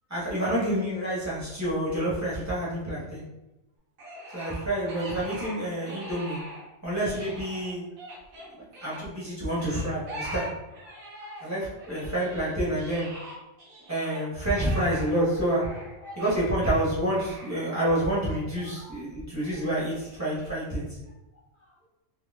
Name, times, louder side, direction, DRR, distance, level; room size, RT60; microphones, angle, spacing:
voice 1, 0.1-3.2 4.3-6.4 6.8-7.8 8.8-10.5 11.4-13.1 13.9-15.7 16.2-20.9, right 1 dB, 15° right, -9 dB, 1.0 m, -28 dB
sound 1, 4.0-6.7 6.9-9.0 9.6-11.5 11.8-18.8 19.4-20.7, right 1 dB, 75° right, 1.4 m, -43 dB
voice 2, 10.8-11.5 12.0-12.1 15.7-15.8 16.0-16.2 18.3-19.0 21.6-21.9, left 1 dB, 80° left, -6 dB, 0.4 m, -49 dB
3.8 x 3.0 x 2.4 m, 0.97 s
omnidirectional pair, 1.5 m